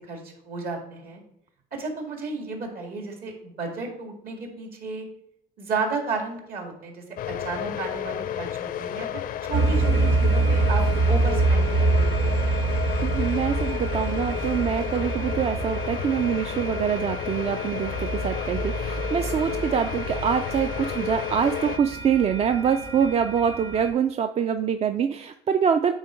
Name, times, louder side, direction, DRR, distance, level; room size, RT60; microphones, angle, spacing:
voice 1, 0.1-1.2 1.7-5.1 5.6-12.5, right 4 dB, 60° right, 2 dB, 2.0 m, -33 dB
sound 1, 7.2-21.8, left 11 dB, 60° left, 0.4 m, -32 dB
sound 2, 9.5-23.9, right 3 dB, 85° right, 1.0 m, -26 dB
voice 2, 13.0-25.9, right 7 dB, 40° right, 8 dB, 0.4 m, -25 dB
8.8 x 3.8 x 4.4 m, 0.75 s
cardioid pair, 110°, 17 cm